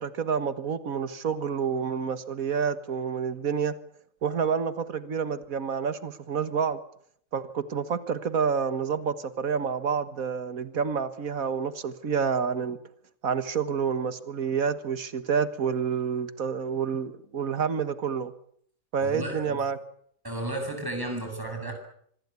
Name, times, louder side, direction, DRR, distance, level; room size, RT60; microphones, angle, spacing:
voice 1, 0.0-3.7 4.2-6.8 7.3-12.8 13.2-18.3 18.9-19.8, right 6 dB, 80° right, 12 dB, 1.9 m, -28 dB
voice 2, 19.0-19.6 20.2-21.7, right 1 dB, 15° right, 3 dB, 7.7 m, -33 dB
26.0 x 21.0 x 8.3 m, 0.66 s
omnidirectional pair, 1.4 m